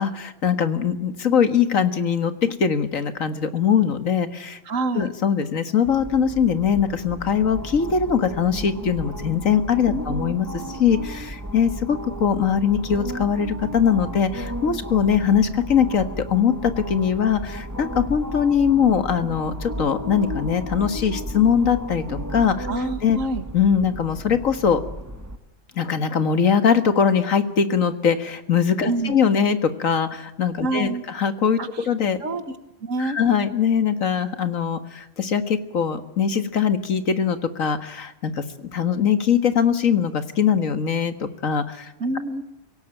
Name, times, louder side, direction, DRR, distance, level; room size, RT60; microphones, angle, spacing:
voice 1, 0.0-4.6 4.9-22.7 23.0-23.2 23.5-24.8 25.8-31.6 31.9-32.2 33.0-38.4 38.7-41.9, left 7 dB, 85° left, 10 dB, 2.0 m, -21 dB
voice 2, 4.7-5.1 9.9-10.2 22.7-23.4 28.9-29.2 30.6-31.0 31.6-31.9 32.2-32.5 32.8-33.2 42.0-42.4, right 2 dB, 80° right, 11 dB, 2.1 m, -27 dB
sound 1, 5.9-25.4, equal, 15° right, 1.6 m, -34 dB
25.5 x 17.5 x 9.1 m, 0.97 s
omnidirectional pair, 1.3 m